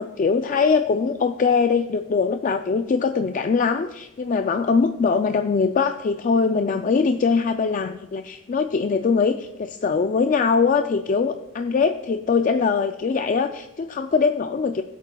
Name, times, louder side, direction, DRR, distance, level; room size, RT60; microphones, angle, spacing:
voice 1, 0.0-14.8, left 5 dB, 40° left, 7 dB, 0.3 m, -22 dB
19.5 x 8.1 x 2.3 m, 0.93 s
head